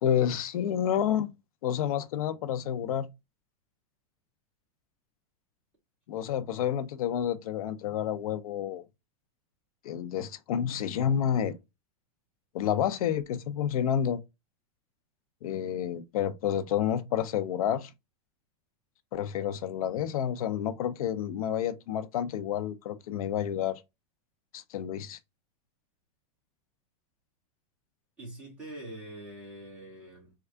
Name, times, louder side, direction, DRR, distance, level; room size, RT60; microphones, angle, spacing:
voice 1, 0.0-1.3 1.6-3.1 6.1-8.8 9.8-11.6 12.5-14.2 15.4-17.9 19.1-23.8 24.5-25.2, left 9 dB, 70° left, 0.6 m, -29 dB
voice 2, 28.2-30.3, right 1 dB, 5° right, 1.5 m, -44 dB
3.6 x 2.3 x 3.3 m
supercardioid pair, 170°, 19 cm